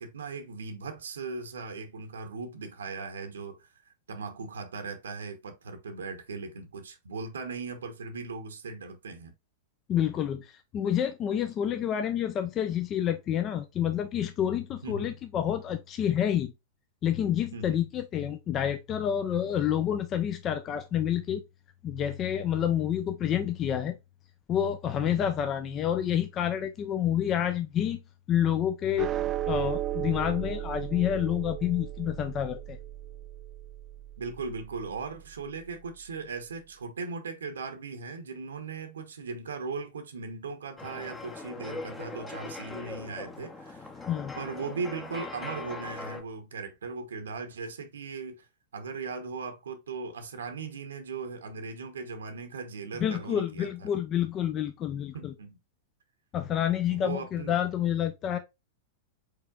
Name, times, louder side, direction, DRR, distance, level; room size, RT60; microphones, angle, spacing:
voice 1, 0.0-3.7 4.1-9.3 14.8-15.1 17.5-17.8 25.0-25.3 34.2-44.1 44.4-48.5 48.7-53.9 55.1-55.6 56.9-57.6, right 4 dB, 75° right, 0.9 m, -38 dB
voice 2, 9.9-16.5 17.0-21.4 21.8-23.9 24.5-28.0 28.3-29.2 29.5-32.8 44.1-44.4 53.0-55.3 56.3-58.4, left 10 dB, 30° left, 0.6 m, -28 dB
sound 1, 29.0-35.5, right 13 dB, 30° right, 0.4 m, -35 dB
sound 2, 40.8-46.2, left 3 dB, 15° left, 0.9 m, -41 dB
4.8 x 4.3 x 2.3 m
figure-of-eight pair, 95°, 0 cm